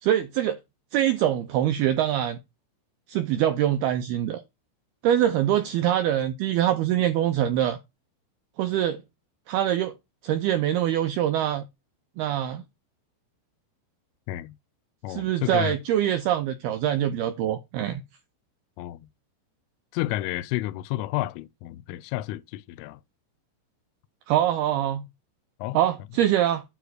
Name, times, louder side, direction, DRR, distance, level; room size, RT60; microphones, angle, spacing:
voice 1, 0.0-0.6 0.9-2.4 3.1-4.4 5.0-7.8 8.6-9.0 9.5-9.9 10.2-11.7 12.2-12.6 15.1-18.0 24.3-25.1 25.7-26.6, right 11 dB, 85° right, 2.2 m, -24 dB
voice 2, 15.0-15.8 18.8-19.1 19.9-23.0 25.6-25.8, left 16 dB, 85° left, 3.2 m, -31 dB
9.7 x 3.3 x 6.3 m
omnidirectional pair, 5.7 m